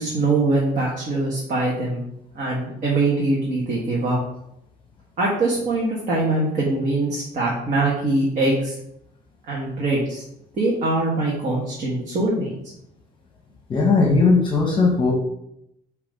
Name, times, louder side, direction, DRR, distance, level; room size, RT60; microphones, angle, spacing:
voice 1, 0.0-2.0 2.3-4.2 5.2-8.8 9.5-10.2 10.6-12.5, right 2 dB, 45° right, -4 dB, 1.5 m, -22 dB
voice 2, 13.7-15.1, left 3 dB, 30° left, 0 dB, 1.0 m, -18 dB
5.7 x 3.1 x 5.3 m, 0.78 s
cardioid pair, 125°, 17 cm